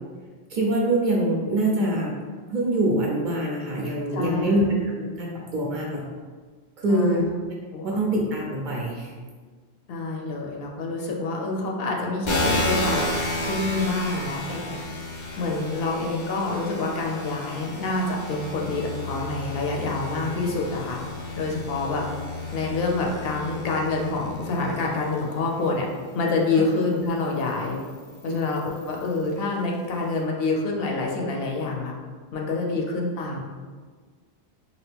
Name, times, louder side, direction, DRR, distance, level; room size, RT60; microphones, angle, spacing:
voice 1, 0.5-2.1 2.5-6.0 6.8-7.2 7.8-9.1 28.3-28.4, right 1 dB, 55° right, -3 dB, 0.6 m, -24 dB
voice 2, 4.1-4.7 6.9-7.3 7.7-8.0 9.9-13.1 13.4-14.8 15.4-21.0 21.4-22.0 22.5-25.9 26.1-27.8 28.2-31.9 32.3-33.4, left 3 dB, 70° left, 0 dB, 0.7 m, -27 dB
sound 1, 12.2-25.6 26.3-29.3, left 1 dB, 40° left, 0.4 m, -32 dB
2.8 x 2.5 x 3.4 m, 1.5 s
omnidirectional pair, 1.1 m